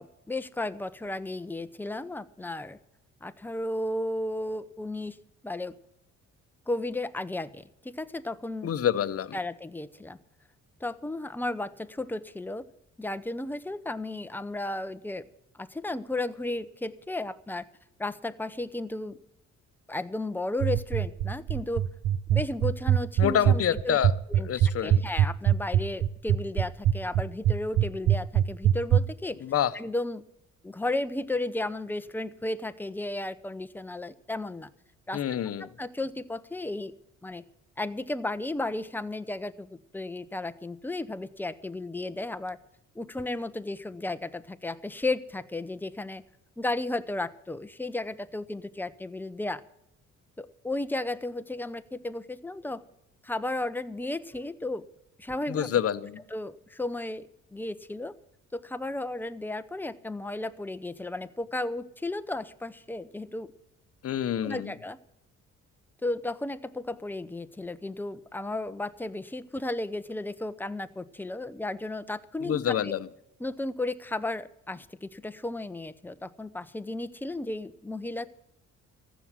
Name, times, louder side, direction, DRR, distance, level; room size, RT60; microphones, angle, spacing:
voice 1, 0.0-2.8 3.2-5.2 5.4-5.7 6.7-8.7 9.3-10.2 10.8-12.6 13.0-15.3 15.6-17.7 18.0-19.2 19.9-21.9 22.3-24.0 24.3-24.5 24.8-29.4 29.7-30.2 30.6-34.7 35.1-36.9 37.2-37.4 37.8-42.6 42.9-46.2 46.6-49.6 50.4-52.8 53.2-54.8 55.2-55.8 56.3-58.2 58.5-63.5 64.4-65.0 66.0-72.9 73.4-78.3, left 2 dB, 5° left, 11 dB, 0.7 m, -34 dB
voice 2, 8.6-9.4 23.2-24.1 24.4-25.0 29.4-29.7 35.1-35.7 55.5-56.2 64.0-64.7 72.4-73.1, left 9 dB, 50° left, 13 dB, 0.8 m, -27 dB
sound 1, 20.6-29.0, right 10 dB, 70° right, 0.8 m, -22 dB
14.5 x 6.2 x 9.9 m, 0.81 s
cardioid pair, 90°, 30 cm